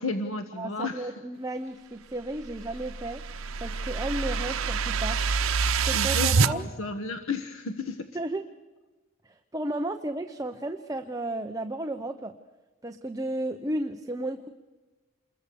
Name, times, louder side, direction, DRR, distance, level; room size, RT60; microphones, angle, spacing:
voice 1, 0.0-1.1 5.9-8.1, left 3 dB, 80° left, 8 dB, 1.2 m, -33 dB
voice 2, 0.6-3.2 3.6-5.2 5.8-6.7 8.1-8.4 9.2-12.3 12.8-14.5, right 1 dB, 15° right, 6 dB, 0.7 m, -33 dB
sound 1, 2.5-6.5, right 5 dB, 90° right, 0.8 m, -26 dB
28.0 x 21.5 x 6.9 m, 1.2 s
head